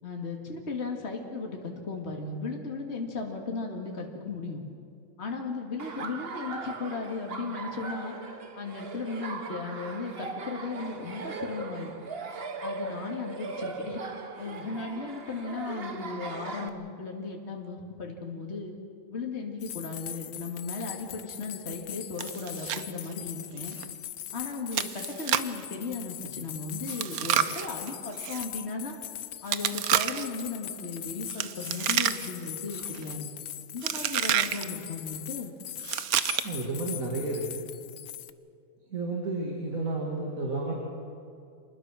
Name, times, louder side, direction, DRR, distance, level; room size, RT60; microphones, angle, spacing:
voice 1, 0.0-4.6 5.2-8.2 8.6-11.9 12.6-14.0 14.4-18.7 19.1-23.8 24.3-29.0 29.4-33.3 33.7-35.5, left 4 dB, 50° left, 1 dB, 2.3 m, -36 dB
Laughter, 5.8-16.7, right 3 dB, 45° right, 1.4 m, -39 dB
sound 1, 19.6-38.3, left 11 dB, 80° left, 1.2 m, -41 dB
Chewing mastication, 22.2-22.8 23.1-23.2 23.7-23.9 24.7-25.6 26.9-28.4 29.5-30.4 31.3-32.5 32.7-33.1 33.8-34.6 35.8-36.6, right 10 dB, 90° right, 1.3 m, -29 dB
voice 2, 36.4-37.6 38.9-40.7, right 2 dB, 65° right, -1 dB, 2.8 m, -31 dB
27.0 x 20.0 x 6.3 m, 2.5 s
omnidirectional pair, 1.5 m